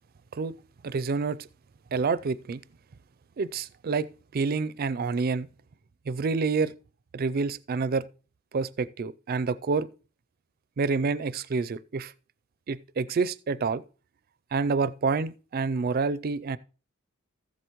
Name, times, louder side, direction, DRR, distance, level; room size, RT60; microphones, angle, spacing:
voice 1, 0.8-1.4 1.9-2.6 3.4-4.1 4.3-5.5 6.1-6.7 7.1-8.0 8.5-9.9 10.8-12.1 12.7-13.8 14.5-16.6, right 4 dB, 45° right, 0.4 m, -28 dB
14.5 x 7.9 x 3.0 m
head